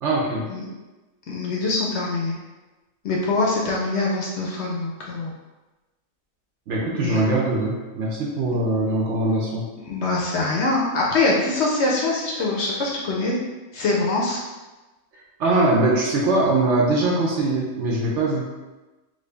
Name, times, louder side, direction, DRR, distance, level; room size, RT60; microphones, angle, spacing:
voice 1, 0.0-0.5 6.7-9.6 15.4-18.5, right 2 dB, 65° right, -3 dB, 0.9 m, -22 dB
voice 2, 1.3-2.3 3.0-5.3 7.0-7.2 8.5-8.6 9.9-13.4 13.7-14.4, left 2 dB, 65° left, -3 dB, 0.8 m, -23 dB
3.1 x 2.6 x 3.2 m, 1.1 s
omnidirectional pair, 1.5 m